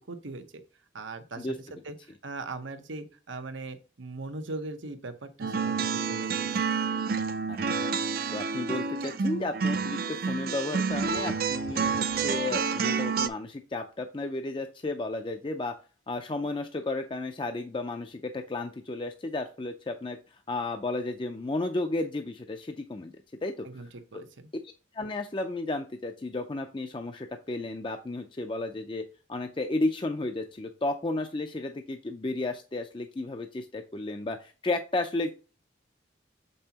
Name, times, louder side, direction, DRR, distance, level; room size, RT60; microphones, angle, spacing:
voice 1, 0.1-0.6 0.9-6.5 23.6-24.5, right 3 dB, 90° right, 8 dB, 0.9 m, -40 dB
sound 1, 5.4-13.3, right 5 dB, 50° right, 0.5 m, -29 dB
voice 2, 7.5-7.9 8.3-15.7 16.1-23.1 23.4-24.2 24.9-35.3, left 2 dB, 25° left, 5 dB, 0.4 m, -33 dB
6.9 x 5.4 x 2.8 m, 0.36 s
head